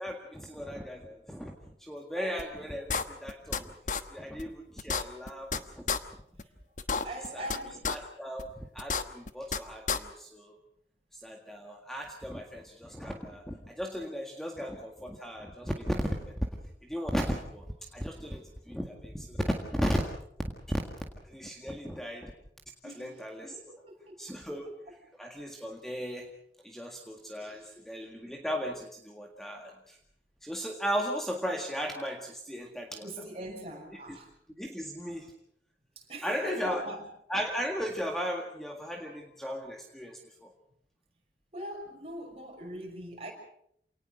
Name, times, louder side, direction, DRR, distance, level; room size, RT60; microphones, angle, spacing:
voice 1, 0.0-1.5 1.8-3.7 4.1-5.8 7.3-7.5 7.9-10.6 11.1-16.3 16.8-20.1 21.2-22.3 23.0-23.6 24.2-24.7 25.2-26.3 26.6-30.0 30.4-33.1 34.1-34.2 34.6-35.3 36.2-36.8 37.3-40.5, equal, ahead, 2 dB, 1.8 m, -36 dB
sound 1, 2.4-2.5 2.9-3.6 3.9-4.0 4.4-4.5 4.8-5.6 5.9-6.0 6.4-6.5 6.8-7.6 7.8-8.0 8.4-8.5 8.8-9.6 9.9-10.0, left 5 dB, 45° left, 1.2 m, -30 dB
voice 2, 7.0-7.9 22.8-24.4 27.4-27.7 33.0-34.3 35.0-35.1 36.0-37.0 41.5-43.3, right 1 dB, 35° right, 1 dB, 6.1 m, -42 dB
27.5 x 19.0 x 6.4 m, 0.70 s
head